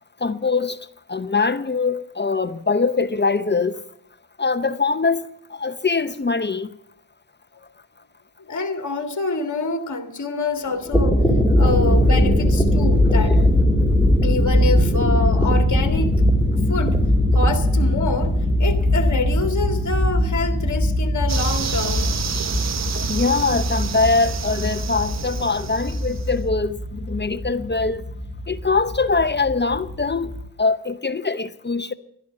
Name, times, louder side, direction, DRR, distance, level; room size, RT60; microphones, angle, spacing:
voice 1, 0.2-0.8 1.1-3.8 4.4-6.7 23.1-28.0 28.5-30.3 30.6-31.9, left 4 dB, 25° left, 0.7 m, -22 dB
voice 2, 8.5-11.2 11.6-13.4 14.2-16.1 16.7-17.0 17.3-22.1, left 3 dB, 45° left, 2.0 m, -26 dB
sound 1, 10.7-30.4, left 1 dB, 5° left, 2.7 m, -20 dB
sound 2, 21.3-26.3, right 7 dB, 40° right, 0.7 m, -30 dB
12.0 x 11.5 x 7.4 m
cardioid pair, 65°, 42 cm